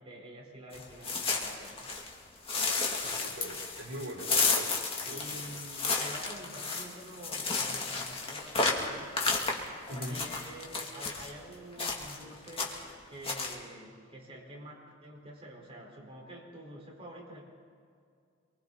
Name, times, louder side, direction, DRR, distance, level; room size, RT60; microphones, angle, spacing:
voice 1, 0.0-1.9 3.0-3.2 5.1-9.2 10.1-12.8 13.1-17.5, right 1 dB, 30° right, -2 dB, 4.5 m, -48 dB
sound 1, 0.7-2.1 2.5-11.3 11.8-12.2 12.5-12.9 13.2-13.5, left 4 dB, 30° left, 2.6 m, -32 dB
voice 2, 2.6-4.7 5.1-5.4 9.9-10.2, equal, 75° right, -1 dB, 4.1 m, -42 dB
27.0 x 24.0 x 4.1 m, 2.2 s
head